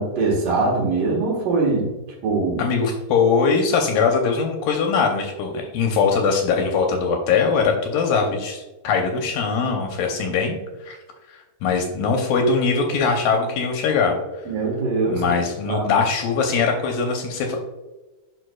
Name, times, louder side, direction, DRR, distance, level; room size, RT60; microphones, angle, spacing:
voice 1, 0.0-1.9 2.2-2.6 14.5-15.2 15.7-15.9, right 3 dB, 65° right, -1 dB, 2.8 m, -22 dB
voice 2, 2.6-11.0 11.3-14.4 15.1-17.6, left 5 dB, 75° left, 3 dB, 2.2 m, -21 dB
11.0 x 4.5 x 2.2 m, 1.2 s
omnidirectional pair, 4.4 m